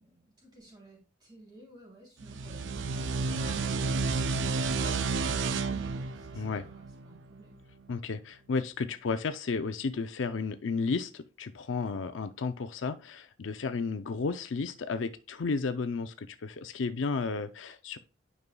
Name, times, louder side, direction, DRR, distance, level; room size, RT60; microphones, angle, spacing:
voice 1, 0.0-7.6, right 1 dB, 20° right, -2 dB, 3.3 m, -52 dB
sound 1, 2.2-7.5, right 4 dB, 75° right, 0.5 m, -31 dB
voice 2, 6.4-6.7 7.9-18.0, left 4 dB, 85° left, 9 dB, 0.5 m, -33 dB
9.6 x 5.4 x 2.3 m, 0.33 s
head